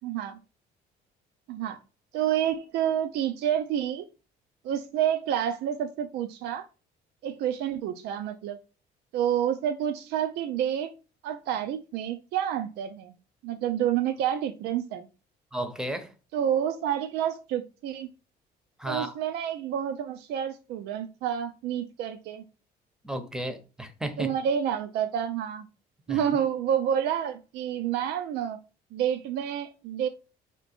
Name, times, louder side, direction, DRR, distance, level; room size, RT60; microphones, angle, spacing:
voice 1, 0.0-0.4 1.5-1.8 2.1-4.1 4.6-6.7 7.2-8.6 9.1-10.9 11.2-13.1 13.4-15.1 16.3-18.1 18.9-22.4 24.2-25.7 26.1-28.6 28.9-30.1, right 9 dB, 80° right, 0.5 m, -29 dB
voice 2, 15.5-16.1 18.8-19.1 23.0-24.3 26.1-26.2, right 1 dB, 5° right, 0.7 m, -33 dB
4.3 x 2.9 x 4.1 m
cardioid pair, 110°, 17 cm